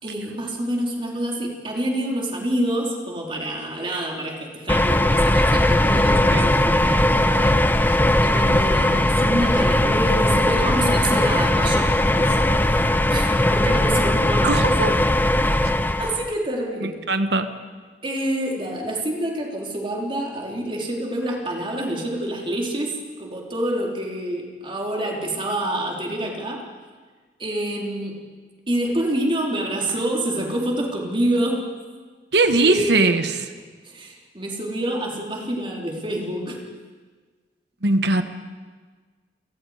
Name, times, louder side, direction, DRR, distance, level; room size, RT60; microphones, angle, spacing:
voice 1, 0.0-14.7 15.0-15.1 16.0-17.0 18.0-26.7 27.4-28.3 28.7-31.7 32.6-33.1 33.8-36.6, right 1 dB, 30° right, -1 dB, 3.5 m, -27 dB
sound 1, 4.7-16.3, left 1 dB, 10° left, 0.7 m, -19 dB
voice 2, 14.4-15.0 16.8-17.5 32.3-33.4 37.8-38.2, right 2 dB, 65° right, 9 dB, 1.3 m, -20 dB
29.5 x 17.5 x 5.0 m, 1.4 s
head